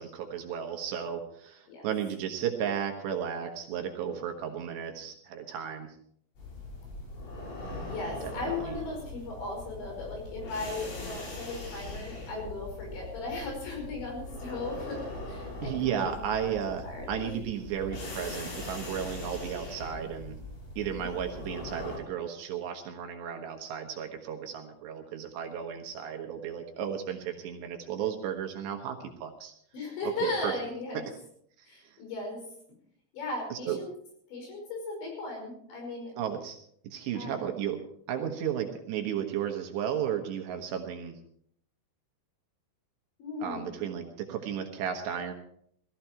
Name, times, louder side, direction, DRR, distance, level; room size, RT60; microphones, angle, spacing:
voice 1, 0.0-5.9 8.2-8.3 8.6-8.7 15.6-20.3 20.8-29.5 30.2-30.5 30.9-31.0 31.8-32.0 33.5-33.8 36.2-36.6 36.8-37.8 38.1-41.1 43.4-45.3, right 8 dB, 70° right, 3 dB, 3.3 m, -34 dB
sound 1, 6.4-22.0, left 2 dB, 90° left, 7.5 m, -41 dB
voice 2, 7.8-15.0 15.3-16.1 16.4-16.6 16.9-17.3 20.9-21.1 29.7-31.0 31.7-32.4 33.1-33.9 34.3-36.1 37.1-37.3 43.2-43.8, left 3 dB, 65° left, 1 dB, 7.6 m, -37 dB
18.0 x 14.5 x 4.5 m, 0.67 s
omnidirectional pair, 5.5 m